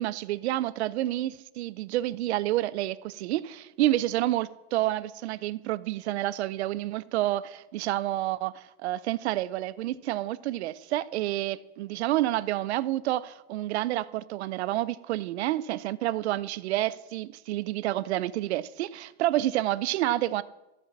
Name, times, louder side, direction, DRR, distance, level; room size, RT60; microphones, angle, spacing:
voice 1, 0.0-20.4, right 15 dB, 70° right, 0.6 m, -29 dB
14.5 x 5.6 x 7.3 m
supercardioid pair, 175°, 34 cm